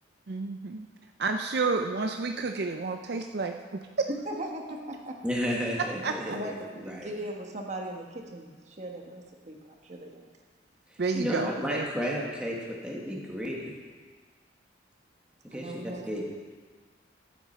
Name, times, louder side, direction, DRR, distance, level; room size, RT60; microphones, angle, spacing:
voice 1, 0.3-0.9 1.2-4.1 6.0-6.4 11.0-11.9, right 4 dB, 60° right, 5 dB, 0.5 m, -30 dB
voice 2, 4.1-4.8 6.2-10.3 15.5-16.2, right 1 dB, 40° right, 2 dB, 1.2 m, -38 dB
voice 3, 5.2-6.5 6.9-7.1 11.1-12.6 12.8-13.7 15.4-15.7 16.1-16.2, equal, 5° right, -3 dB, 1.7 m, -32 dB
14.0 x 8.4 x 4.3 m, 1.5 s
head